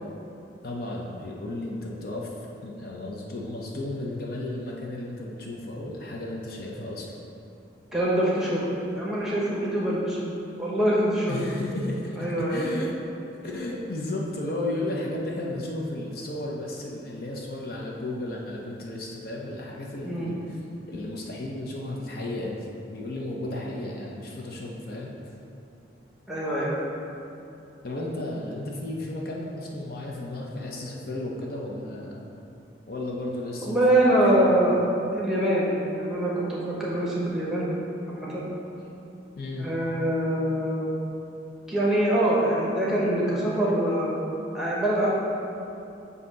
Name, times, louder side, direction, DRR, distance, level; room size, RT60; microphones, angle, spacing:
voice 1, 0.6-7.2 11.3-12.9 13.4-20.6 20.9-25.1 27.8-32.3 32.9-33.8 34.1-34.2 39.4-39.7, left 1 dB, 50° left, -2 dB, 0.6 m, -34 dB
voice 2, 7.9-8.7 8.9-10.2 10.6-11.4 12.2-12.7 20.0-20.3 26.3-26.7 33.6-34.8 35.1-37.7 38.1-38.5 39.6-40.9 41.7-44.1 44.5-45.1, right 1 dB, 5° right, -6 dB, 1.0 m, -24 dB
7.7 x 2.8 x 5.4 m, 2.8 s
head